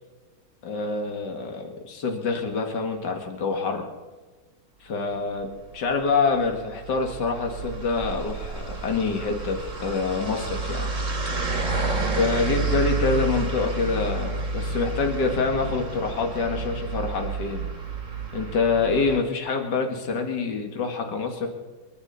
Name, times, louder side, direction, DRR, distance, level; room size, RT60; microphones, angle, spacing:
voice 1, 0.6-3.9 4.8-10.9 12.2-17.7 18.3-21.5, left 4 dB, 60° left, 4 dB, 2.5 m, -26 dB
sound 1, 6.0-19.2, right 3 dB, 40° right, 2.9 m, -30 dB
28.0 x 11.5 x 4.2 m, 1.3 s
omnidirectional pair, 2.1 m